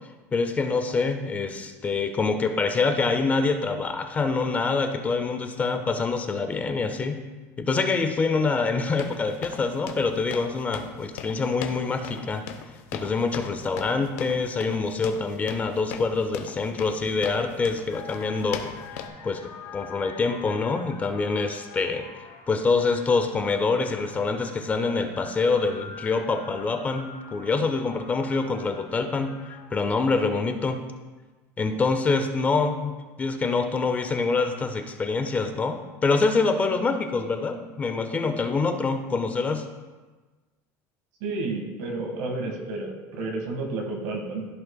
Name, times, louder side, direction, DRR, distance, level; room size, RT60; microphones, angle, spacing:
voice 1, 0.3-7.2 7.6-12.4 12.9-18.6 18.9-22.0 22.5-30.8 31.6-39.6, left 4 dB, 20° left, 7 dB, 0.5 m, -25 dB
sound 1, 9.0-19.1, left 7 dB, 85° left, 0.8 m, -39 dB
sound 2, 17.9-29.9, left 6 dB, 55° left, 1.4 m, -45 dB
voice 2, 41.2-44.5, right 3 dB, 75° right, 2 dB, 1.8 m, -31 dB
14.5 x 5.3 x 2.3 m, 1.3 s
cardioid pair, 155°, 7 cm